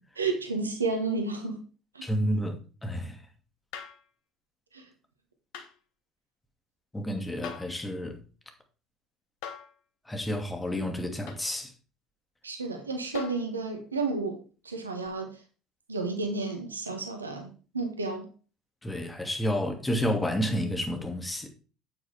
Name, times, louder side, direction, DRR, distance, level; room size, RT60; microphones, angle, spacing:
voice 1, 0.2-1.6 1.9-2.0 4.7-4.8 12.4-15.4 15.9-18.3, right 3 dB, 85° right, 1.5 m, -31 dB
voice 2, 2.0-2.6 2.8-3.2 6.9-8.2 10.1-11.7 18.8-21.5, equal, 15° left, 2.4 m, -30 dB
sound 1, 3.7-4.1 5.5-5.7 7.4-7.8 9.4-9.8 11.3-11.5 13.1-13.5 15.0-15.1, left 8 dB, 65° left, 1.4 m, -41 dB
8.9 x 8.6 x 3.5 m
figure-of-eight pair, 60°, 0 cm